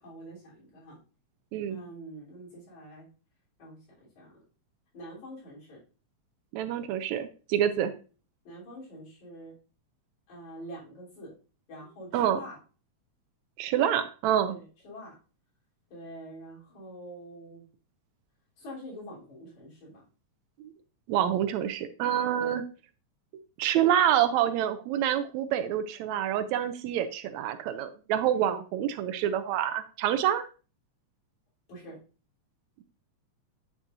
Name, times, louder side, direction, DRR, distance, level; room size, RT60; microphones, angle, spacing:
voice 1, 0.0-1.0 1.7-3.1 3.6-3.8 4.2-4.3 4.9-5.8 7.7-7.9 8.4-9.5 10.3-11.3 11.7-12.6 14.5-15.1 15.9-17.6 18.6-20.0 22.4-22.6 28.3-28.6 31.7-32.0, equal, 80° left, -6 dB, 4.9 m, -45 dB
voice 2, 6.5-7.9 12.1-12.4 13.6-14.5 21.1-22.6 23.6-30.4, right 10 dB, 80° right, 10 dB, 1.8 m, -27 dB
8.9 x 6.1 x 2.6 m, 0.35 s
omnidirectional pair, 3.3 m